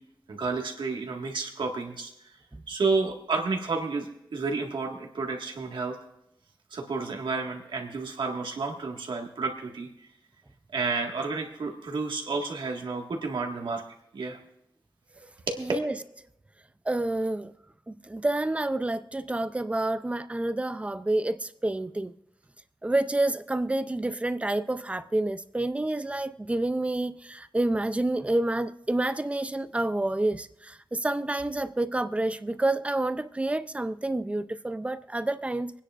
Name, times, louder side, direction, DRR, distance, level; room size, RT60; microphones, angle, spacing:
voice 1, 0.3-2.1 2.7-6.0 6.7-9.9 10.7-13.8 14.1-14.4 15.5-15.7, right 4 dB, 80° right, 1.8 m, -31 dB
voice 2, 15.6-15.9 16.9-17.5 17.9-22.1 22.8-35.8, right 2 dB, 15° right, 0.5 m, -28 dB
25.5 x 9.9 x 2.5 m
wide cardioid pair, 150°, 8 cm